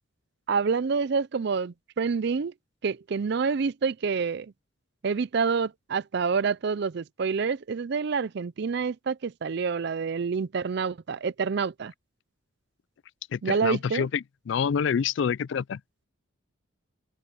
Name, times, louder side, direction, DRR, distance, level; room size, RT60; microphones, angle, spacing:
voice 1, 0.5-2.5 2.8-4.5 5.0-11.9 13.4-14.1, right 5 dB, 55° right, 0.4 m, -27 dB
voice 2, 13.3-15.8, left 7 dB, 60° left, 0.3 m, -27 dB
open air
head